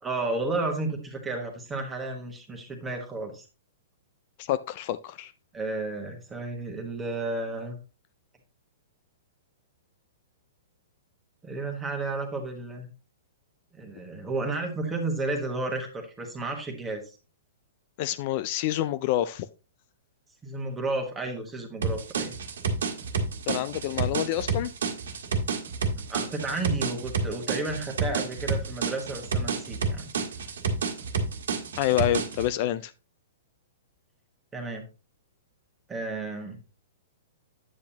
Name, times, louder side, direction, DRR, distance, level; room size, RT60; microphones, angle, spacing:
voice 1, 0.0-3.4 5.5-7.8 11.4-12.9 13.7-17.0 20.4-22.4 26.1-30.1 34.5-34.8 35.9-36.6, right 2 dB, 10° right, 1.3 m, -32 dB
voice 2, 4.4-5.3 18.0-19.5 23.5-24.7 31.8-32.9, left 13 dB, 35° left, 0.3 m, -27 dB
sound 1, 21.8-32.5, right 5 dB, 85° right, 1.6 m, -29 dB
8.5 x 8.2 x 2.8 m
hypercardioid pair, 165°, 0 cm